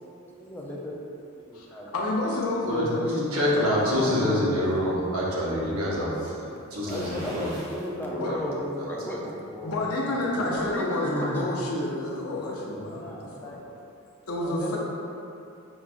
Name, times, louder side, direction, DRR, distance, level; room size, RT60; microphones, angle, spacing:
voice 1, 0.3-1.0 1.4-1.9 6.8-9.8 10.1-11.4 12.9-13.7 14.4-14.8, equal, 10° left, -3 dB, 0.4 m, -35 dB
voice 2, 1.9-3.3 3.6-4.6 8.2-8.4 9.6-13.5 14.3-14.8, left 2 dB, 90° left, -3 dB, 0.6 m, -29 dB
voice 3, 3.3-7.5 8.3-8.4, equal, 80° right, -5 dB, 0.9 m, -26 dB
sound 1, 6.9-7.9 8.4-8.5 10.0-10.8 11.1-11.2, right 1 dB, 40° right, 0.9 m, -43 dB
5.9 x 2.3 x 2.4 m, 2.7 s
head